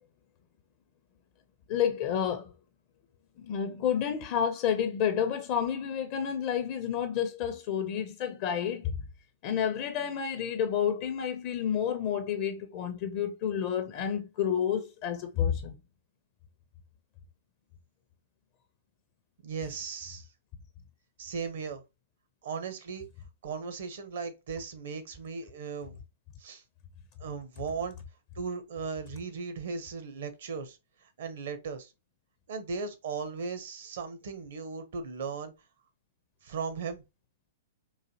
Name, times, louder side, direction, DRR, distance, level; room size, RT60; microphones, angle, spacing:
voice 1, 1.7-2.5 3.4-8.9 9.4-15.8, left 8 dB, 40° left, 0.5 m, -30 dB
voice 2, 19.4-20.3 21.2-21.8 22.4-23.1 23.4-26.0 26.4-26.6 27.2-27.9 28.3-31.9 32.5-35.5 36.4-37.0, right 5 dB, 60° right, 0.7 m, -37 dB
3.9 x 2.6 x 2.7 m
figure-of-eight pair, 110°, 0 cm